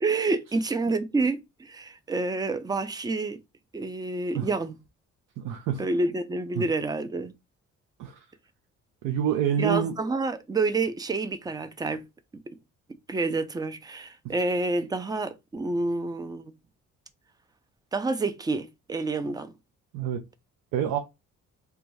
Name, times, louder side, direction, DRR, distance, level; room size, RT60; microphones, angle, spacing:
voice 1, 0.0-3.4 3.7-4.8 5.8-7.3 9.6-12.0 12.5-12.6 13.1-16.5 17.9-19.5, right 3 dB, 15° right, 0.4 m, -28 dB
voice 2, 5.4-5.8 6.6-6.7 8.0-8.2 9.0-9.9 14.2-14.3 19.9-20.2 20.7-21.0, right 9 dB, 90° right, 0.5 m, -27 dB
2.5 x 2.3 x 3.0 m
cardioid pair, 90°, 30 cm